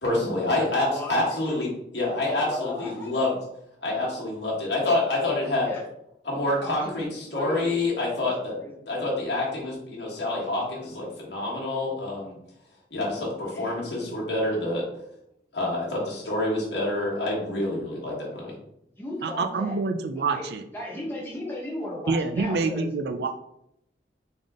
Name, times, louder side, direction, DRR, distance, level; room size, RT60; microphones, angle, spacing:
voice 1, 0.0-1.7 1.9-3.3 3.8-5.7 6.2-8.6 8.9-12.4 12.9-14.9 15.5-18.6, left 2 dB, 75° left, -4 dB, 1.4 m, -27 dB
voice 2, 0.7-1.4 2.4-3.1 5.6-5.9 6.6-7.8 8.1-8.3 8.6-9.0 13.5-14.3 19.0-19.7 20.3-22.9, left 2 dB, 10° left, -4 dB, 1.2 m, -36 dB
voice 3, 19.2-20.6 22.1-23.3, right 4 dB, 70° right, 6 dB, 0.4 m, -26 dB
3.9 x 3.6 x 3.6 m, 0.79 s
head